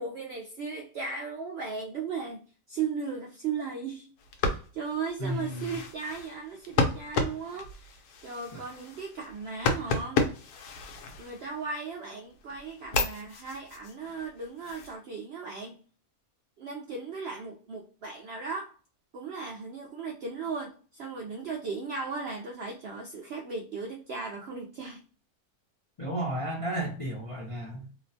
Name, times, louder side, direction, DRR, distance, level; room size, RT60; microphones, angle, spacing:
voice 1, 0.0-4.1 4.4-10.5 11.2-15.8 16.6-18.7 19.1-25.0, right 5 dB, 75° right, 0 dB, 0.5 m, -37 dB
sound 1, 4.2-11.8 12.3-14.9, left 4 dB, 90° left, 1.1 m, -33 dB
voice 2, 5.2-5.7 8.5-8.6 26.0-27.9, right 1 dB, 55° left, -5 dB, 0.3 m, -33 dB
2.8 x 2.0 x 2.6 m, 0.38 s
omnidirectional pair, 1.6 m